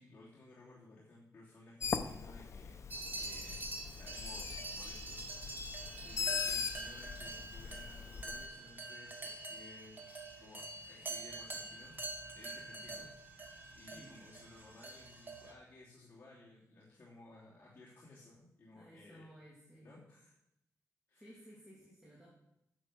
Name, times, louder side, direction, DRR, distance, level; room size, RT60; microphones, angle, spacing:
voice 1, 0.0-2.8 3.2-3.7 4.0-5.2 6.0-10.0 10.4-11.9 12.3-13.1 13.7-19.3 19.8-20.3 21.1-21.4, left 2 dB, 35° left, -8 dB, 2.9 m, -57 dB
Bird, 1.8-8.5, left 6 dB, 50° left, 0.7 m, -41 dB
sound 1, 2.9-15.5, right 2 dB, 30° right, 1.7 m, -45 dB
voice 2, 18.7-20.0 21.2-22.3, equal, 5° right, -7 dB, 2.9 m, -57 dB
10.0 x 6.8 x 6.4 m, 0.82 s
wide cardioid pair, 130°, 7 cm